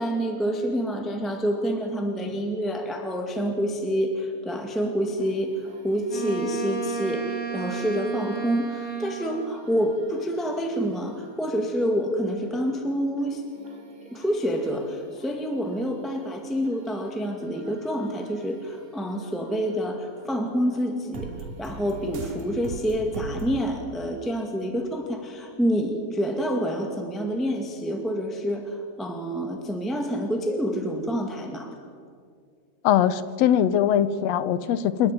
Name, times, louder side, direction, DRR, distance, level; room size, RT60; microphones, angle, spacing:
voice 1, 0.0-13.4 14.1-21.3 21.6-31.8, equal, ahead, 2 dB, 1.4 m, -27 dB
sound 1, 5.2-23.6, right 3 dB, 75° right, 3.8 m, -45 dB
Wind instrument woodwind instrument, 6.1-9.6, right 5 dB, 25° right, 4.7 m, -33 dB
voice 2, 32.8-35.1, left 10 dB, 70° left, 14 dB, 1.7 m, -21 dB
29.5 x 12.0 x 9.9 m, 2.1 s
omnidirectional pair, 3.5 m